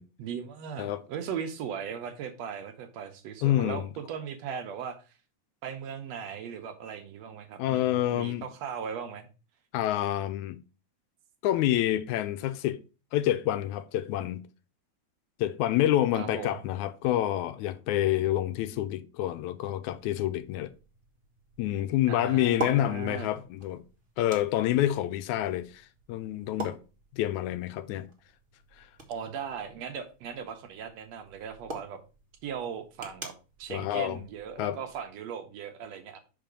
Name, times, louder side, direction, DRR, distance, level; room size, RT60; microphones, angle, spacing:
voice 1, 0.2-5.1 5.6-9.3 16.2-16.6 22.1-23.3 29.1-32.0 32.4-33.3 33.6-36.2, right 7 dB, 70° right, 1.9 m, -38 dB
voice 2, 3.4-3.9 7.6-8.5 9.7-10.6 11.4-12.8 13.1-14.4 15.4-20.7 21.6-23.8 24.2-26.8 27.1-28.1 28.8-28.9 33.7-34.2 34.6-34.8, left 13 dB, 85° left, 2.0 m, -28 dB
sound 1, 19.9-35.1, right 2 dB, 45° right, 0.6 m, -45 dB
5.7 x 4.8 x 5.1 m
omnidirectional pair, 3.4 m